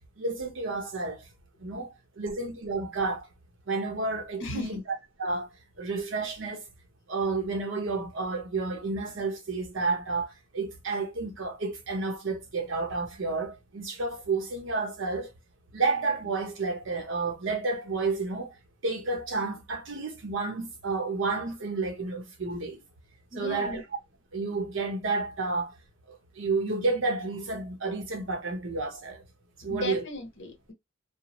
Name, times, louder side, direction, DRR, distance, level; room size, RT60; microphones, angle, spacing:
voice 1, 0.2-1.2 1.6-3.3 3.7-4.8 5.2-5.5 5.8-6.6 7.1-15.3 15.7-18.5 18.8-22.8 23.3-23.8 24.3-25.7 26.4-29.2 29.6-30.0, right 3 dB, 75° right, 0.8 m, -31 dB
voice 2, 4.4-4.8 23.3-23.8 29.6-30.7, left 2 dB, 70° left, 1.0 m, -36 dB
2.3 x 2.1 x 2.9 m
head